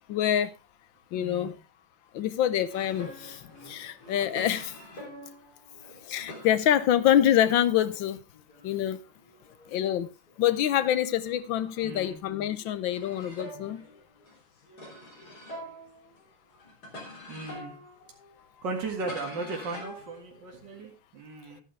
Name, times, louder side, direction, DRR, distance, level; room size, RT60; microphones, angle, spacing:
voice 1, 0.1-0.5 1.1-1.5 2.1-3.4 3.7-4.7 6.1-8.2 8.6-9.0 9.7-10.1 10.4-13.8, left 11 dB, 80° left, 1.5 m, -26 dB
voice 2, 1.1-1.5 11.8-12.2 17.3-17.8 18.6-21.6, right 3 dB, 65° right, 2.6 m, -36 dB
sound 1, 2.7-8.0 8.3-11.6 12.0-20.8, left 1 dB, 50° left, 3.8 m, -46 dB
12.0 x 9.8 x 3.3 m
omnidirectional pair, 2.1 m